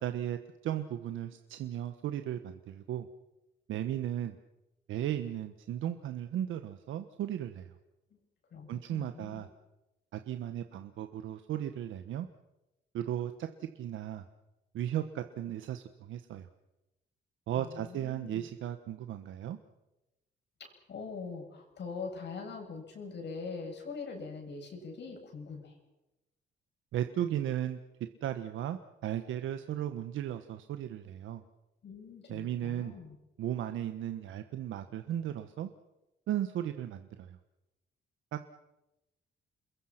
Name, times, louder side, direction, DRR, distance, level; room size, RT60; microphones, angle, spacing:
voice 1, 0.0-3.1 3.7-4.4 4.9-7.7 8.7-9.5 10.1-12.3 12.9-14.2 14.7-16.5 17.5-19.6 26.9-27.8 28.2-31.4 32.3-32.9 33.4-35.7 36.3-37.4 38.3-38.4, right 11 dB, 80° right, 8 dB, 1.3 m, -36 dB
voice 2, 8.5-9.4 17.6-18.5 20.6-25.7 31.8-33.2, left 4 dB, 60° left, 3 dB, 7.9 m, -43 dB
28.5 x 22.0 x 6.0 m, 0.95 s
cardioid pair, 90°, 20 cm